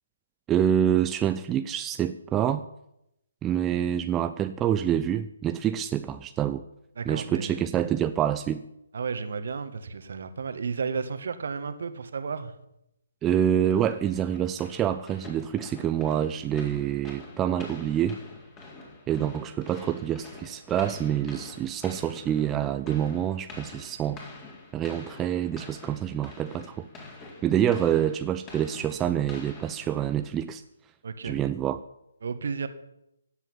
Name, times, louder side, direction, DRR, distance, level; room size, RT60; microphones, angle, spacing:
voice 1, 0.5-2.7 3.4-6.6 7.1-8.6 13.2-18.2 19.1-24.2 24.7-26.9 27.4-30.6 31.2-31.8, right 10 dB, 15° right, 10 dB, 0.5 m, -27 dB
voice 2, 7.0-7.6 8.9-12.5 31.0-31.4 32.2-32.7, right 5 dB, 55° right, 10 dB, 1.7 m, -33 dB
sound 1, 13.7-30.4, left 3 dB, 20° left, 4.1 m, -46 dB
16.5 x 8.2 x 9.9 m, 0.84 s
figure-of-eight pair, 135°, 0 cm